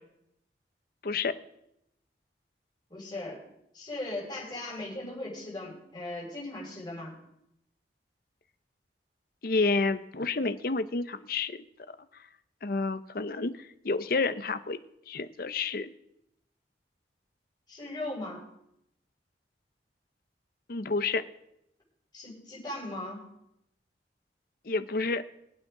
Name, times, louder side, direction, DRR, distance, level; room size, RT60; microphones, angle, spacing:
voice 1, 1.0-1.3 9.4-11.6 12.6-14.8 15.1-15.9 20.7-21.2 24.6-25.2, left 3 dB, 55° left, 12 dB, 0.7 m, -29 dB
voice 2, 2.9-3.4 3.7-7.1 17.7-18.4 22.1-23.2, left 2 dB, 25° left, -5 dB, 6.1 m, -38 dB
23.0 x 8.8 x 3.8 m, 0.80 s
head